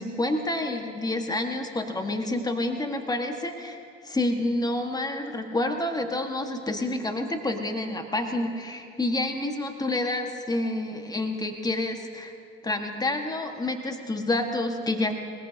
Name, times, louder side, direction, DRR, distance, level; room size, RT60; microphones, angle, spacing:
voice 1, 0.0-3.8 4.0-12.3 12.6-15.2, left 2 dB, 10° left, 5 dB, 1.5 m, -28 dB
21.5 x 20.0 x 2.8 m, 2.4 s
hypercardioid pair, 75°, 38 cm